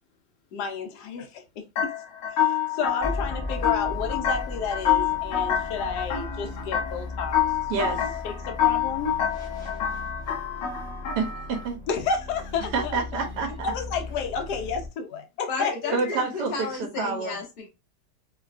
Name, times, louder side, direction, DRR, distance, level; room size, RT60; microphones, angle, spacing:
voice 1, 0.5-1.6 2.3-7.4 7.7-9.2 11.9-13.0 13.6-15.9, left 5 dB, 70° left, 1.1 m, -31 dB
sound 1, 1.8-11.7, left 10 dB, 90° left, 1.4 m, -27 dB
sound 2, 3.0-14.9, left 2 dB, 5° left, 0.4 m, -37 dB
voice 2, 7.7-8.1 11.2-11.8 12.7-13.7 15.9-17.4, right 4 dB, 75° right, 1.2 m, -28 dB
voice 3, 15.5-17.7, left 4 dB, 40° left, 1.0 m, -32 dB
3.1 x 2.2 x 2.4 m
omnidirectional pair, 1.9 m